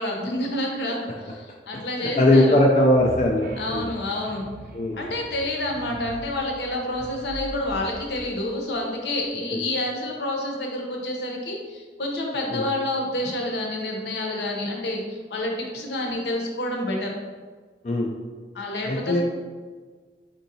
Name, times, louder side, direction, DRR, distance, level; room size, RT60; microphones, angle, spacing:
voice 1, 0.0-2.6 3.6-4.5 5.0-17.1 18.5-19.2, left 1 dB, 75° left, 0 dB, 0.8 m, -28 dB
voice 2, 2.2-3.9 4.7-5.0 9.5-9.6 12.5-12.7 17.8-18.1 18.9-19.2, left 1 dB, 40° left, -1 dB, 0.4 m, -19 dB
sound 1, 2.9-9.1, right 1 dB, 50° right, 0.3 m, -41 dB
4.5 x 3.8 x 2.7 m, 1.5 s
head